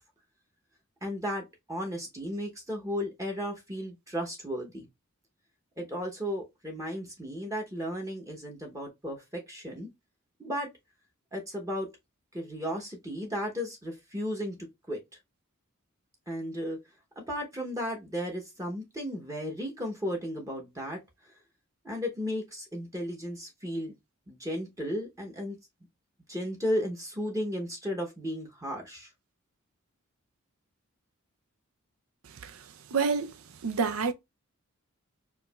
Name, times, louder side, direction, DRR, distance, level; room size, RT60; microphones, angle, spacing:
voice 1, 1.0-4.9 5.8-9.9 10.4-10.7 11.3-11.9 12.3-14.6 14.9-15.0 16.3-16.8 17.2-21.3 21.8-23.9 24.3-25.6 26.3-29.1, equal, 15° right, 0.8 m, -34 dB
voice 2, 32.9-33.3 33.6-34.1, right 5 dB, 80° right, 0.5 m, -28 dB
4.6 x 2.5 x 2.3 m
head